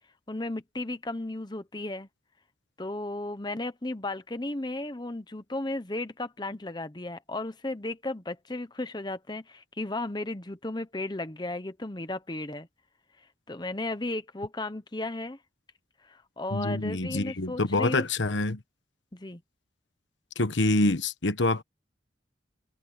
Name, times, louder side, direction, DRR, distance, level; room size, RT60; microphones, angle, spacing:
voice 1, 0.3-2.1 2.8-12.7 13.5-15.4 16.0-18.1 19.1-19.4, left 2 dB, 25° left, 0.9 m, -34 dB
voice 2, 16.5-18.6 20.4-21.6, left 2 dB, 85° left, 1.3 m, -26 dB
head